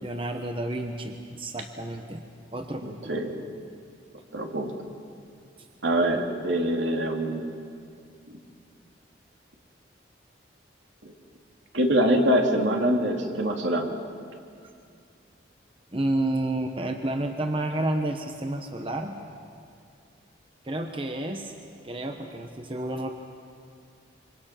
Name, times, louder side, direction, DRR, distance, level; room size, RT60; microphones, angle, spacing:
voice 1, 0.0-2.2 2.5-3.1 15.9-19.2 20.6-21.5 21.8-23.1, right 1 dB, 30° right, 4 dB, 1.1 m, -30 dB
voice 2, 2.8-3.3 4.3-4.7 5.8-7.4 11.0-11.1 11.7-13.9, right 1 dB, 75° right, 2 dB, 2.7 m, -24 dB
26.5 x 25.5 x 5.9 m, 2.3 s
head